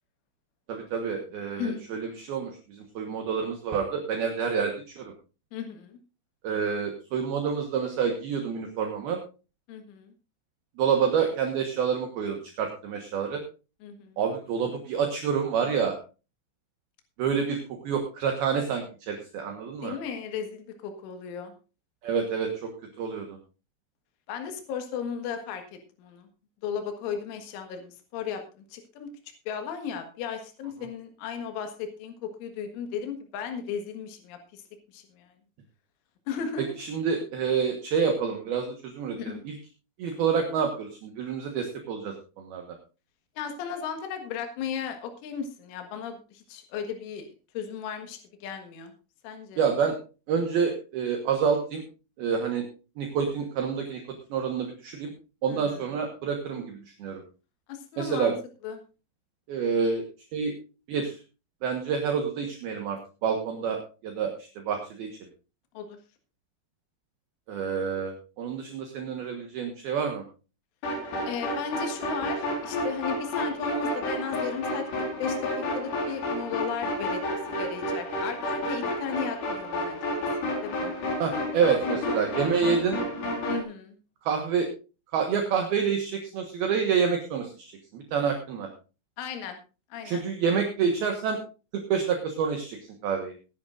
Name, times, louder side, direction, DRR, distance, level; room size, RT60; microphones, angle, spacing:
voice 1, 0.7-5.1 6.4-9.2 10.8-13.4 14.2-16.0 17.2-17.6 17.8-19.9 22.0-22.7 23.0-23.4 36.8-39.6 40.0-42.6 49.6-49.9 50.3-51.8 52.2-52.6 53.0-54.0 54.3-55.1 55.4-57.2 58.0-58.3 59.5-60.0 60.3-60.5 60.9-61.2 61.6-65.1 67.5-70.2 81.2-83.0 84.2-84.7 85.1-88.7 90.0-91.4 91.7-92.8 93.0-93.3, right 6 dB, 65° right, 3 dB, 2.8 m, -28 dB
voice 2, 5.5-6.0 9.7-10.1 13.8-14.2 19.8-21.5 24.3-25.6 26.0-26.3 26.6-28.4 28.7-29.1 29.5-34.6 34.9-35.3 36.3-36.7 39.2-39.4 43.4-47.3 47.6-48.9 49.2-49.6 55.5-55.9 57.7-58.3 58.6-58.8 65.8-66.0 71.2-75.4 75.7-80.0 80.4-80.9 83.5-84.0 89.2-89.6 89.9-90.2, left 7 dB, 80° left, 6 dB, 4.1 m, -35 dB
sound 1, 70.8-83.6, left 1 dB, 60° left, 6.2 m, -31 dB
20.0 x 10.5 x 2.6 m, 0.32 s
omnidirectional pair, 5.5 m